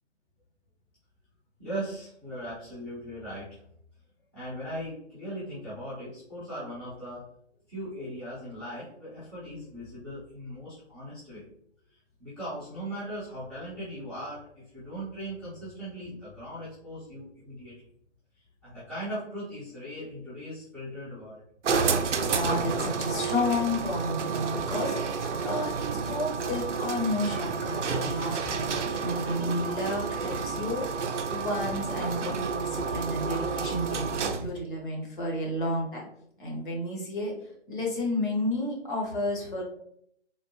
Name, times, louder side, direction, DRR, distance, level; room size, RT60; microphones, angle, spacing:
voice 1, 1.6-3.6 4.3-7.3 7.7-11.4 11.9-17.7 18.6-21.4, equal, 5° left, -14 dB, 0.7 m, -39 dB
sound 1, 21.6-34.6, right 5 dB, 85° right, 0.5 m, -30 dB
voice 2, 22.2-36.0 36.4-37.3 37.7-39.6, left 1 dB, 45° left, -2 dB, 1.1 m, -31 dB
3.4 x 2.2 x 2.8 m, 0.70 s
figure-of-eight pair, 145°, 35 cm